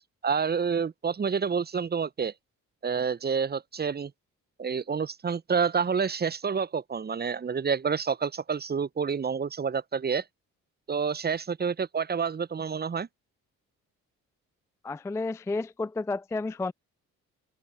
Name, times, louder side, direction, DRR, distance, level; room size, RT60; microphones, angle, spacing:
voice 1, 0.2-2.3 2.8-4.1 4.6-10.2 10.9-13.1, right 6 dB, 25° right, 0.9 m, -28 dB
voice 2, 14.8-16.7, left 3 dB, 5° left, 0.4 m, -31 dB
open air
figure-of-eight pair, 45°, 43 cm